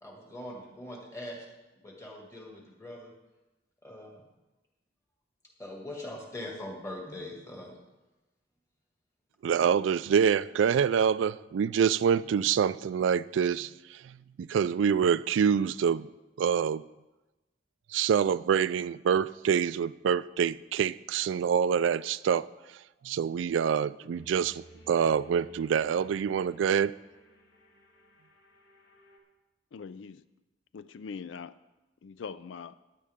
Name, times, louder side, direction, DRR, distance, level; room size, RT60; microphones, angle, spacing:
voice 1, 0.0-1.5 1.8-3.1 3.8-4.2 5.6-7.7, left 1 dB, 15° left, 2.1 m, -42 dB
voice 2, 9.4-13.7 14.4-16.1 16.4-16.8 17.9-22.5 23.0-26.9, right 7 dB, 90° right, 0.3 m, -26 dB
sound 1, 24.1-29.2, right 1 dB, 55° left, 1.9 m, -55 dB
voice 3, 29.7-30.2 30.7-31.6 32.0-32.8, left 5 dB, 85° left, 0.4 m, -42 dB
15.0 x 10.0 x 3.6 m
head